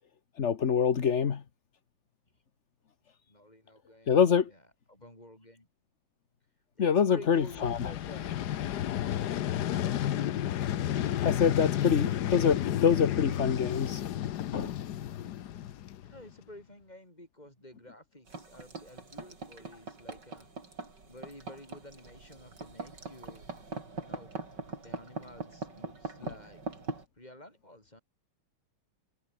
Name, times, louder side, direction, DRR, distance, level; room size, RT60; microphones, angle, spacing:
voice 1, 0.4-1.4 4.1-4.5 6.8-7.8 11.2-14.0 14.5-14.7, left 7 dB, 40° left, 1.2 m, -25 dB
voice 2, 3.3-4.2 4.5-4.6 4.9-5.7 6.8-8.5 16.0-20.5 21.1-23.5 24.0-24.3 24.8-26.6 27.2-28.0, left 1 dB, 20° left, 7.3 m, -51 dB
Vehicle, 7.4-16.3, left 11 dB, 60° left, 1.2 m, -32 dB
sound 1, 18.3-27.0, right 3 dB, 50° right, 4.9 m, -42 dB
omnidirectional pair, 2.4 m